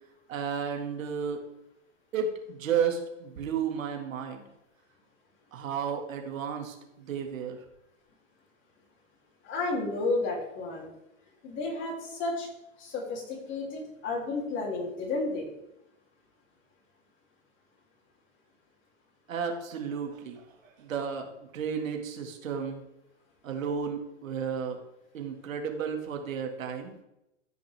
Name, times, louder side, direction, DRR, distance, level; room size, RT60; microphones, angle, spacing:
voice 1, 0.3-1.4 2.1-4.4 5.5-7.6 19.3-20.4 20.8-21.3 21.5-22.8 23.4-24.8 25.1-26.9, right 7 dB, 85° right, 3 dB, 2.2 m, -32 dB
voice 2, 9.4-10.9 11.4-12.5 12.8-15.5, left 3 dB, 30° left, -1 dB, 3.2 m, -32 dB
14.5 x 5.8 x 3.5 m, 0.87 s
hypercardioid pair, 140°, 39 cm